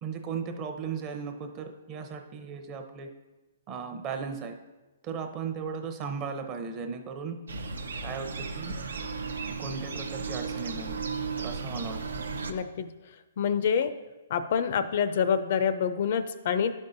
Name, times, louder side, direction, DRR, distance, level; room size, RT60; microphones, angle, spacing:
voice 1, 0.0-3.1 3.7-4.5 5.0-7.4 8.0-8.7 9.6-11.0 11.4-12.2, right 5 dB, 30° right, 5 dB, 0.6 m, -36 dB
sound 1, 7.5-12.5, right 4 dB, 90° right, 0.6 m, -35 dB
voice 2, 12.5-12.9 13.4-13.9 14.3-16.7, left 7 dB, 50° left, 11 dB, 0.4 m, -26 dB
10.5 x 5.3 x 2.6 m, 1.1 s
hypercardioid pair, 150°, 0 cm